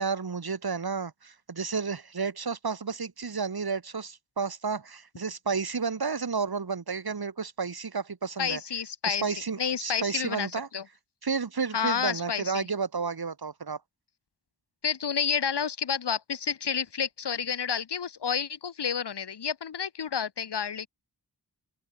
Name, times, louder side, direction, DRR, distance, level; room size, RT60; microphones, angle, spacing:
voice 1, 0.0-8.6 9.1-10.7 11.2-13.8, right 5 dB, 65° right, 2.5 m, -31 dB
voice 2, 8.4-9.3 9.6-10.8 11.7-12.7 14.8-20.9, left 7 dB, 85° left, 1.3 m, -30 dB
open air
wide cardioid pair, 70°, 40 cm